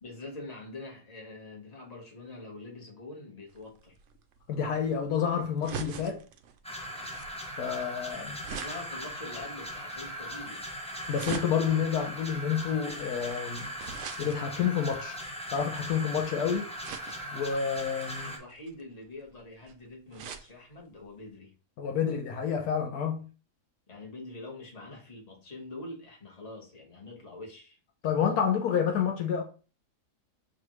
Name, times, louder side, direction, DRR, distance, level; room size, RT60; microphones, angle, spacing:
voice 1, 0.0-3.9 8.5-10.6 18.2-21.5 23.9-27.8, left 2 dB, 25° left, 1.2 m, -44 dB
sound 1, 3.5-16.1 16.8-17.4 18.0-20.5 21.0-21.1 21.3-21.4, right 7 dB, 70° right, 0.7 m, -44 dB
voice 2, 4.5-6.2 7.6-8.4 11.1-13.7 14.2-15.2 15.5-16.7 17.3-18.3 21.8-23.2 28.0-29.4, left 7 dB, 75° left, 1.1 m, -29 dB
sound 2, 6.6-18.4, equal, 10° left, 0.3 m, -39 dB
6.4 x 2.6 x 3.0 m
omnidirectional pair, 1.7 m